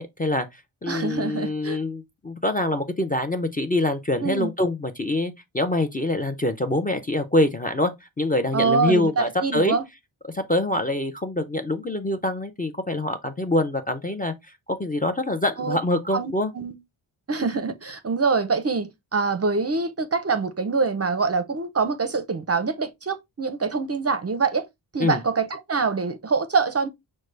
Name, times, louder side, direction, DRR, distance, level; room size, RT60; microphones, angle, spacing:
voice 1, 0.0-9.8 10.3-14.3 14.7-16.5 25.0-25.2, left 1 dB, 20° left, 0.4 m, -25 dB
voice 2, 0.9-1.8 4.2-4.5 8.5-9.8 15.6-15.8 16.1-16.8 17.3-24.7 24.9-26.9, right 4 dB, 30° right, 0.5 m, -25 dB
6.2 x 2.2 x 3.2 m
wide cardioid pair, 120°, 47 cm